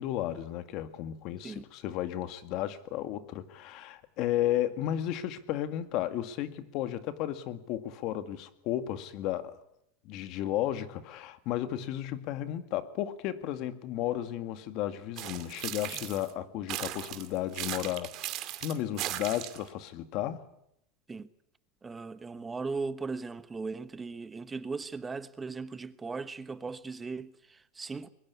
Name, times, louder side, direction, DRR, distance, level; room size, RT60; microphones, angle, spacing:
voice 1, 0.0-9.6 10.0-20.4, left 12 dB, 50° left, 2.0 m, -33 dB
sound 1, 15.2-16.3 16.7-19.7, right 15 dB, 45° right, 2.2 m, -37 dB
voice 2, 21.8-28.1, right 4 dB, 15° right, 1.1 m, -38 dB
22.5 x 21.0 x 8.4 m
supercardioid pair, 140°, 0 cm